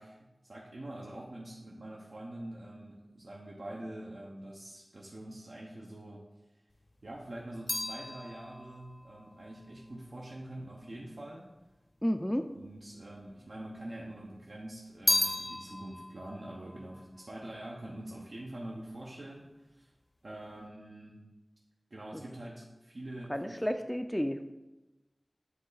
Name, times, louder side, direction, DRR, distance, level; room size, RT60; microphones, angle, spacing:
voice 1, 0.0-6.2 7.0-11.5 12.5-19.9 20.2-21.2 21.9-23.7, right 1 dB, 85° right, -4 dB, 0.7 m, -45 dB
sound 1, 6.7-11.1 11.9-12.7 13.0-14.1 14.5-18.0 18.3-18.8, left 2 dB, 80° left, 0.8 m, -36 dB
voice 2, 12.0-12.5 22.1-22.2 23.3-24.5, equal, 5° left, 7 dB, 0.3 m, -31 dB
7.8 x 3.1 x 3.9 m, 1.1 s
wide cardioid pair, 50°, 0 cm